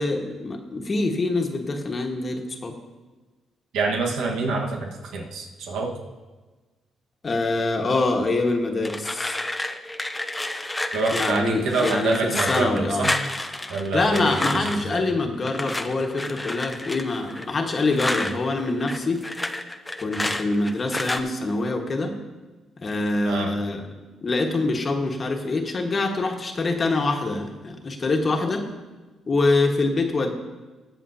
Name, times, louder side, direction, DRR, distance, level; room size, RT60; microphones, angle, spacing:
voice 1, 0.0-2.7 7.2-9.4 11.1-13.1 13.9-19.3 20.0-22.1 22.8-23.9 24.2-28.6 29.3-30.3, left 3 dB, 35° left, 3 dB, 1.5 m, -25 dB
voice 2, 3.7-5.9 10.9-13.2 13.7-15.0 23.2-23.5, right 3 dB, 85° right, 0 dB, 1.5 m, -26 dB
sound 1, 8.8-14.9 15.5-18.3 18.7-21.2, left 1 dB, 10° left, 0.7 m, -30 dB
21.0 x 7.3 x 2.8 m, 1.3 s
cardioid pair, 90°, 0 cm